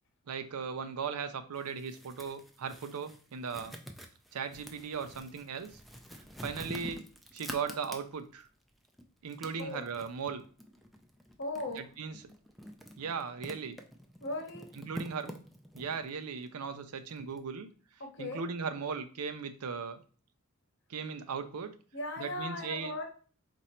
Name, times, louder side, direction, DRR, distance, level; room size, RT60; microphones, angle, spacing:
voice 1, 0.3-3.8 4.3-5.7 6.4-7.1 7.3-8.5 9.2-10.4 12.0-12.1 13.0-13.8 14.9-15.4 15.7-17.7 18.2-20.0 20.9-21.7 22.2-22.9, right 5 dB, 90° right, 9 dB, 0.5 m, -37 dB
sound 1, 1.6-8.4 8.8-17.4, equal, ahead, 0.3 m, -48 dB
voice 2, 11.4-11.9 14.2-14.7 18.0-18.4 21.9-23.0, left 2 dB, 55° left, 3 dB, 1.0 m, -38 dB
4.2 x 2.6 x 4.3 m, 0.39 s
head